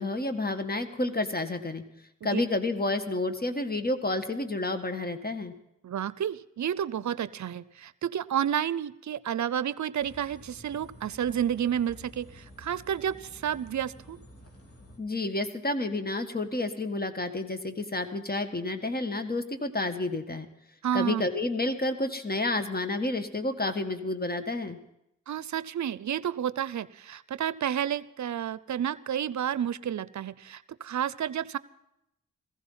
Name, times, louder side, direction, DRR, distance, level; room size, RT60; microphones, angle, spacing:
voice 1, 0.0-1.8 2.2-5.5 15.0-20.5 20.9-24.8, left 2 dB, 30° left, 8 dB, 1.7 m, -30 dB
voice 2, 5.8-14.2 20.8-21.2 25.3-31.6, right 9 dB, 60° right, 18 dB, 0.6 m, -31 dB
sound 1, 10.0-15.0, equal, 45° left, 3.5 m, -51 dB
16.0 x 15.0 x 5.6 m, 0.83 s
supercardioid pair, 40°, 32 cm